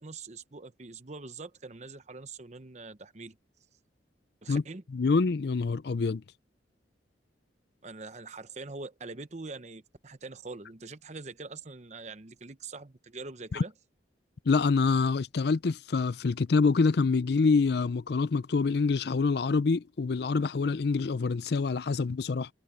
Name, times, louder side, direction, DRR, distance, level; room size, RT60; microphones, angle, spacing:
voice 1, 0.0-3.4 4.4-4.8 7.8-13.7, right 3 dB, 40° right, 0.9 m, -43 dB
voice 2, 4.9-6.2 13.5-13.6 14.5-22.5, left 4 dB, 60° left, 0.5 m, -26 dB
head